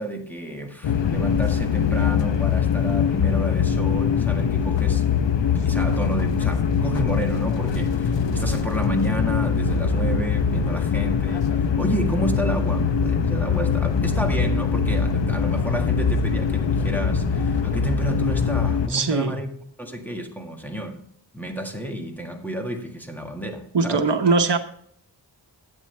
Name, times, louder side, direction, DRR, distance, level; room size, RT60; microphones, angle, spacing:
voice 1, 0.0-5.0 5.5-11.5 11.8-21.0 21.3-24.1, equal, 5° left, 1.7 m, -30 dB
sound 1, 0.8-18.9, left 6 dB, 75° left, 0.9 m, -22 dB
voice 2, 18.9-19.4 23.7-24.6, right 4 dB, 70° right, 1.1 m, -21 dB
12.0 x 8.8 x 3.3 m
wide cardioid pair, 100°, 44 cm